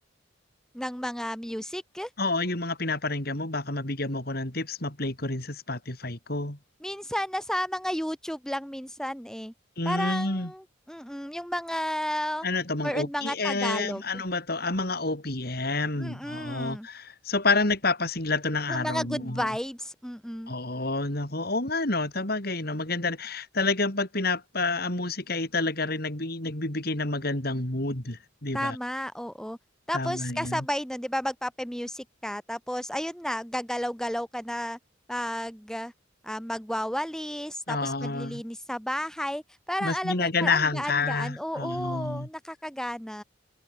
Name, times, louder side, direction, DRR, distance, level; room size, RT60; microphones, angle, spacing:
voice 1, 0.7-2.1 6.8-9.5 9.8-12.5 12.8-14.0 16.0-16.9 18.7-20.5 28.5-29.6 29.9-34.8 35.1-35.9 36.2-43.2, equal, 5° left, 6.2 m, -32 dB
voice 2, 2.2-6.6 9.8-10.5 12.4-19.5 20.5-28.8 29.9-30.7 37.7-38.4 39.8-42.3, left 3 dB, 50° left, 3.6 m, -29 dB
head